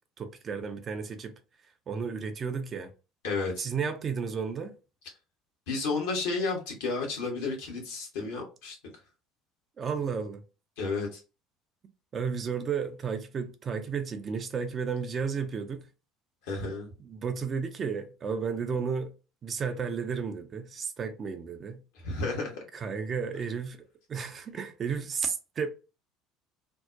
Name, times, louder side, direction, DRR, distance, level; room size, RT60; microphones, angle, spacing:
voice 1, 0.2-1.3 1.9-2.9 3.6-4.7 9.8-10.4 12.1-15.9 17.0-19.1 19.4-21.8 22.7-25.7, right 6 dB, 35° right, 0.4 m, -33 dB
voice 2, 3.2-3.6 5.7-8.8 10.8-11.2 16.5-16.9 22.0-22.6, left 3 dB, 65° left, 0.9 m, -32 dB
2.6 x 2.0 x 2.4 m
figure-of-eight pair, 60°, 0 cm